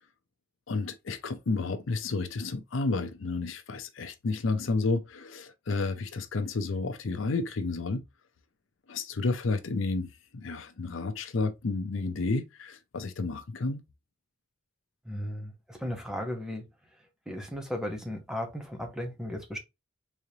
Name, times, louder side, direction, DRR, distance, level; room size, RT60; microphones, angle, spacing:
voice 1, 0.7-8.0 8.9-10.1 10.3-13.8, left 3 dB, 70° left, 0.6 m, -31 dB
voice 2, 15.1-16.6 17.3-19.6, left 1 dB, 5° right, 0.9 m, -35 dB
3.7 x 3.2 x 2.7 m
head